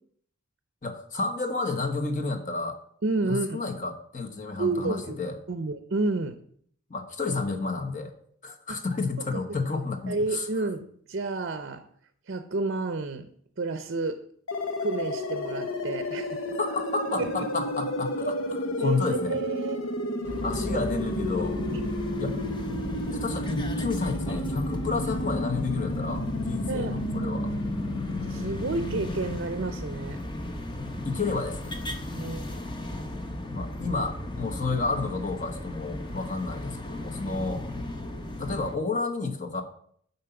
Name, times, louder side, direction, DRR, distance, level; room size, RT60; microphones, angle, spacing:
voice 1, 0.8-2.8 3.2-5.4 6.9-8.1 8.4-10.5 16.6-19.4 20.4-21.6 22.2-22.4 23.1-27.5 31.0-31.7 33.5-37.6 38.4-39.6, left 3 dB, 35° left, 5 dB, 1.2 m, -31 dB
voice 2, 3.0-3.6 4.6-5.2 5.5-6.4 8.7-8.8 9.2-9.4 10.1-11.8 12.3-13.3 13.6-14.2 14.8-16.5 17.2-17.3 18.8-19.8 20.7-20.8 21.7-21.8 26.7-27.0 28.3-30.2 32.1-32.5, right 3 dB, 50° right, 10 dB, 0.6 m, -30 dB
sound 1, 14.5-29.4, left 1 dB, 70° left, 1.0 m, -32 dB
sound 2, 20.2-38.8, left 1 dB, 20° left, 0.9 m, -35 dB
9.9 x 4.1 x 6.9 m, 0.63 s
head